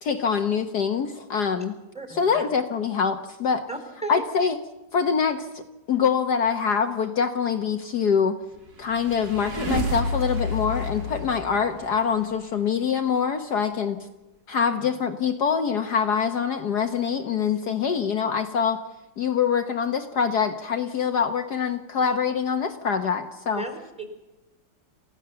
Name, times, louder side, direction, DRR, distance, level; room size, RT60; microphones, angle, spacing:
voice 1, 0.0-1.7 2.1-3.6 4.1-4.6 4.9-5.6 5.9-8.4 8.8-14.1 14.5-18.8 19.2-23.6, left 6 dB, 60° left, 6 dB, 1.6 m, -24 dB
voice 2, 1.9-2.5 3.7-4.3 14.7-14.9 23.6-24.0, right 2 dB, 5° right, 6 dB, 3.6 m, -35 dB
sound 1, 8.7-12.3, equal, 55° right, 2.9 m, -30 dB
28.5 x 15.5 x 6.9 m, 1.0 s
omnidirectional pair, 2.0 m